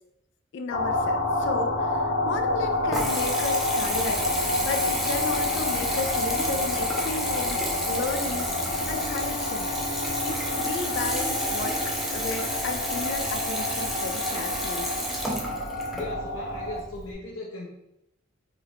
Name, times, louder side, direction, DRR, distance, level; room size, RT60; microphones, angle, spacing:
voice 1, 0.5-9.7 10.2-14.9, left 3 dB, 65° left, 6 dB, 0.4 m, -34 dB
sound 1, 0.7-16.8, left 2 dB, 45° left, 0.8 m, -29 dB
Water tap faucet / Bathtub (filling or washing) / Trickle dribble, 2.3-17.1, equal, ahead, 0.5 m, -32 dB
sound 2, 3.8-9.1, right 1 dB, 45° right, 0.6 m, -42 dB
voice 2, 15.9-17.7, left 2 dB, 80° left, -5 dB, 0.8 m, -37 dB
3.6 x 3.2 x 3.1 m, 0.84 s
head